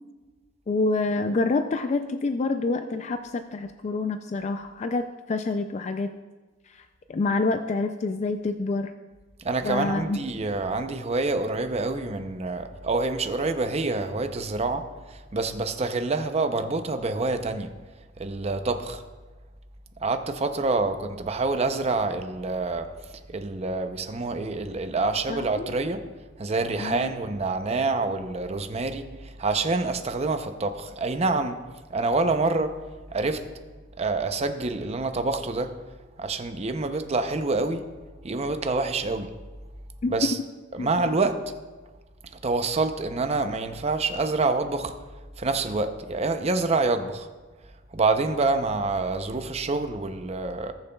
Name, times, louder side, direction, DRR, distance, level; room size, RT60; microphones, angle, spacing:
voice 1, 0.7-6.1 6.7-8.9 9.6-10.2 25.3-25.7 26.8-27.1 40.0-40.3 40.8-40.9, left 3 dB, 35° left, 7 dB, 0.3 m, -27 dB
voice 2, 9.4-17.7 18.2-19.0 20.0-22.9 23.3-26.0 26.4-31.6 31.9-32.9 33.1-33.5 34.0-35.8 36.2-37.9 38.2-39.3 40.0-40.4 40.7-41.5 42.4-44.9 45.4-47.3 47.9-50.7, right 3 dB, 35° right, 8 dB, 0.6 m, -27 dB
19.5 x 6.8 x 2.3 m, 1.3 s
head